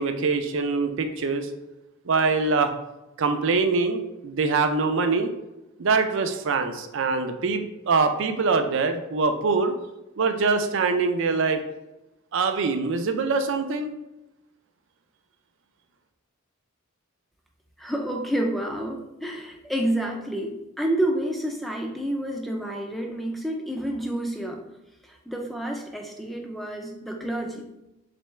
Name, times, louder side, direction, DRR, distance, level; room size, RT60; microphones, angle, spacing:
voice 1, 0.0-1.5 2.1-2.7 3.2-5.3 5.8-9.7 10.2-11.6 12.3-13.9, right 4 dB, 60° right, 7 dB, 0.4 m, -24 dB
voice 2, 17.8-24.6 25.3-27.7, right 1 dB, ahead, 1 dB, 0.4 m, -29 dB
3.7 x 3.3 x 3.1 m, 0.94 s
head